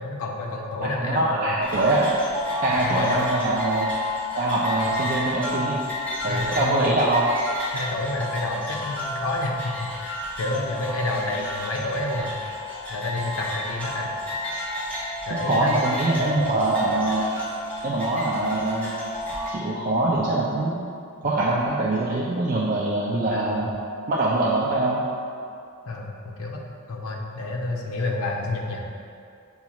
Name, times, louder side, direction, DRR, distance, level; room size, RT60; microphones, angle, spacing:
voice 1, 0.0-1.5 2.7-3.3 4.7-4.9 6.3-6.9 7.7-12.3 12.9-14.1 15.3-15.8 16.4-16.5 23.3-23.7 25.9-26.6 26.9-28.9, left 2 dB, 85° left, 0 dB, 0.6 m, -29 dB
voice 2, 0.8-2.1 2.6-3.9 4.4-5.8 6.2-7.3 15.4-17.3 17.8-19.0 19.5-20.9 21.2-23.7 24.1-25.0, right 2 dB, 40° right, -6 dB, 0.4 m, -23 dB
sound 1, 1.6-19.5, left 1 dB, 5° left, 0.7 m, -31 dB
7.0 x 2.4 x 2.9 m, 2.4 s
head